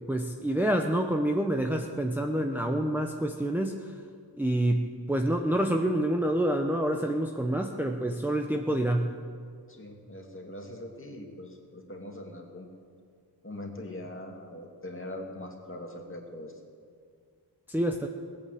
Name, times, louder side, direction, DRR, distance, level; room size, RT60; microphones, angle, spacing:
voice 1, 0.1-4.0 4.4-9.1 17.7-18.1, right 1 dB, 5° right, 3 dB, 0.7 m, -27 dB
voice 2, 9.7-12.7 13.4-16.6, left 1 dB, 30° left, 1 dB, 2.2 m, -42 dB
18.0 x 8.5 x 7.7 m, 2.2 s
wide cardioid pair, 85°, 43 cm